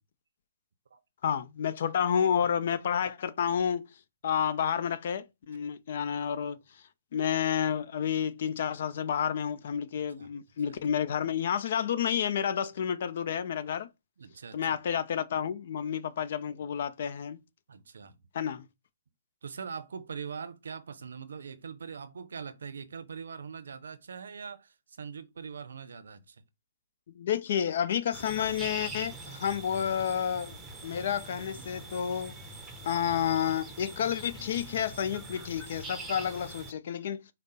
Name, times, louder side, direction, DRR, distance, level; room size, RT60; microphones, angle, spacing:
voice 1, 1.2-3.9 4.2-6.6 7.1-13.9 14.5-17.4 18.3-18.6 27.1-30.6 30.8-32.3 32.8-37.2, left 8 dB, 60° left, 0.5 m, -30 dB
voice 2, 14.2-14.8 17.7-18.2 19.4-26.4 32.6-32.7, right 6 dB, 80° right, 0.5 m, -42 dB
sound 1, 28.1-36.7, right 2 dB, 5° right, 0.8 m, -43 dB
4.9 x 2.0 x 4.1 m
hypercardioid pair, 135°, 0 cm